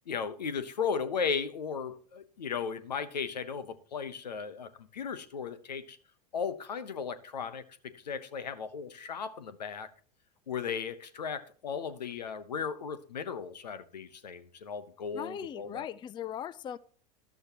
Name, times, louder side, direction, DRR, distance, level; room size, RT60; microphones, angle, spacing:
voice 1, 0.1-6.0 6.3-9.9 10.5-15.9, left 6 dB, 80° left, 1.0 m, -36 dB
voice 2, 15.1-16.8, left 9 dB, 20° left, 0.4 m, -39 dB
13.0 x 12.0 x 3.0 m
figure-of-eight pair, 85°, 21 cm